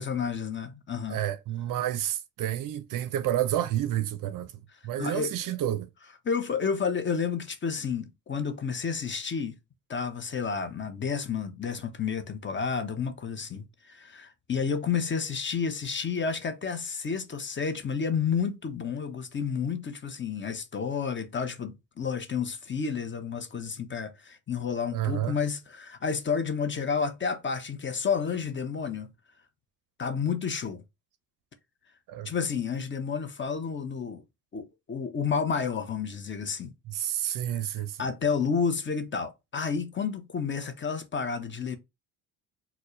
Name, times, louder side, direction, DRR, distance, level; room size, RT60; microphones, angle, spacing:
voice 1, 0.0-1.2 4.7-5.5 6.2-9.5 9.9-29.1 30.0-30.8 32.2-34.2 34.5-36.7 37.5-41.8, left 6 dB, 25° left, 0.7 m, -31 dB
voice 2, 1.1-4.5 4.8-5.9 24.9-25.4 32.1-32.3 36.9-38.0, right 12 dB, 50° right, 0.5 m, -30 dB
4.3 x 2.2 x 3.0 m
hypercardioid pair, 65°, 43 cm